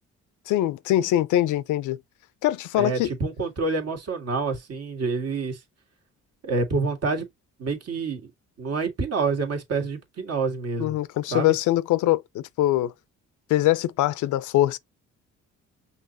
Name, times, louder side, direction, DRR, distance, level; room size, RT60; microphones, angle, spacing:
voice 1, 0.5-2.0 2.4-3.1 10.8-12.9 13.5-14.8, left 14 dB, 80° left, 0.5 m, -23 dB
voice 2, 2.7-5.6 6.4-7.3 7.6-8.2 8.6-11.0 11.3-11.5, right 4 dB, 55° right, 1.8 m, -27 dB
5.6 x 2.9 x 2.8 m
cardioid pair, 90°, 30 cm